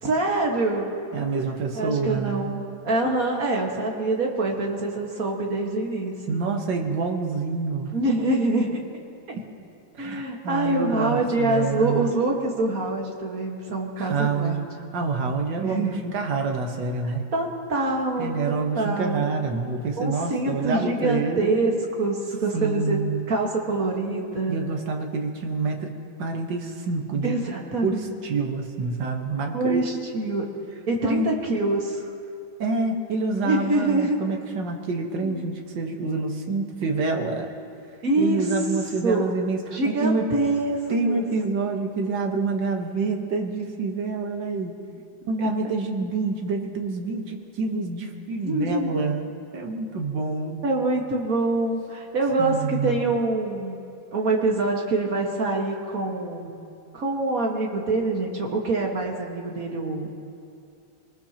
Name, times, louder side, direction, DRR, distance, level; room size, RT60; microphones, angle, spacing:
voice 1, 0.0-0.9 1.7-6.4 7.9-8.8 10.0-14.6 15.6-16.0 17.0-19.3 20.0-24.6 27.2-28.1 29.5-30.5 30.9-32.1 33.4-34.2 35.2-35.4 38.0-38.5 39.0-39.4 39.7-41.2 48.4-49.0 50.4-53.8 54.1-56.5 56.9-60.1, right 2 dB, 45° right, 0 dB, 2.0 m, -25 dB
voice 2, 1.1-2.5 6.3-7.9 9.3-9.5 9.9-12.1 14.0-14.6 14.9-17.2 18.2-21.6 22.5-23.4 24.5-25.9 26.2-27.4 27.8-30.0 31.0-31.3 32.6-37.5 38.2-40.3 40.9-44.8 45.3-49.2 49.5-50.6 52.4-53.1, right 4 dB, 65° right, 2 dB, 1.9 m, -27 dB
25.0 x 19.5 x 2.9 m, 2.5 s
omnidirectional pair, 2.2 m